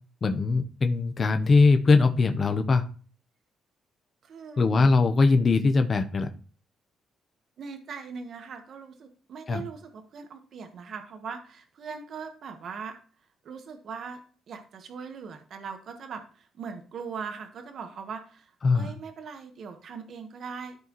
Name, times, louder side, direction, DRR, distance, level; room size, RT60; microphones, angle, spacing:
voice 1, 0.2-2.8 4.6-6.3 9.5-9.6 18.6-18.9, left 4 dB, 40° left, 7 dB, 0.9 m, -21 dB
voice 2, 4.2-4.9 7.6-12.9 13.4-14.2 14.5-20.8, right 5 dB, 60° right, 6 dB, 1.4 m, -40 dB
13.5 x 4.7 x 3.1 m, 0.39 s
cardioid pair, 90°, 0 cm